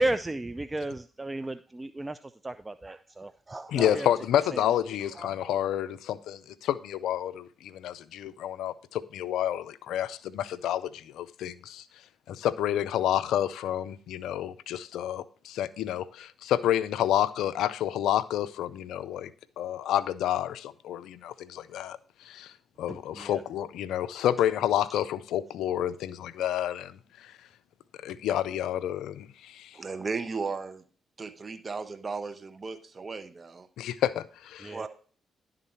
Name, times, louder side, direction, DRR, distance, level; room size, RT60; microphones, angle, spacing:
voice 1, 0.0-4.1 4.4-4.7 5.0-5.6 22.9-23.4 34.6-34.9, right 2 dB, 20° right, 0.4 m, -34 dB
voice 2, 3.7-11.8 12.3-19.3 19.6-27.3 28.0-29.8 33.8-34.8, left 11 dB, 75° left, 0.3 m, -29 dB
voice 3, 29.7-30.8 31.2-33.7 34.7-34.9, right 4 dB, 40° right, 1.0 m, -35 dB
11.0 x 3.8 x 4.3 m
hypercardioid pair, 45°, 0 cm